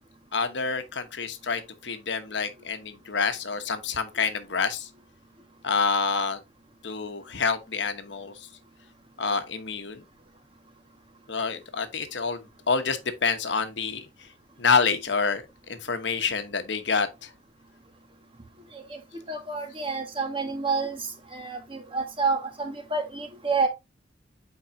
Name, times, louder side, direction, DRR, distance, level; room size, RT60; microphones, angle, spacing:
voice 1, 0.3-4.9 5.6-6.4 6.8-8.3 9.2-10.0 11.3-14.1 14.6-17.3, left 5 dB, 65° left, 1.0 m, -27 dB
voice 2, 19.3-23.7, right 4 dB, 30° right, 1.6 m, -29 dB
8.7 x 4.7 x 2.7 m
head